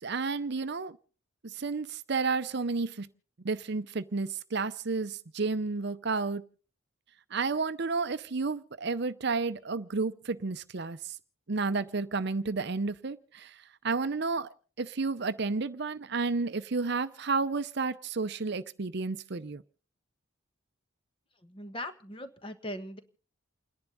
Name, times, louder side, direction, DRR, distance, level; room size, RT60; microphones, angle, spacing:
voice 1, 0.0-1.0 1.4-3.1 3.4-6.4 7.3-11.2 11.5-14.5 14.8-19.6, right 4 dB, 55° right, 13 dB, 0.7 m, -31 dB
voice 2, 21.4-23.0, left 1 dB, 25° left, 9 dB, 1.3 m, -40 dB
29.5 x 10.5 x 4.0 m, 0.40 s
head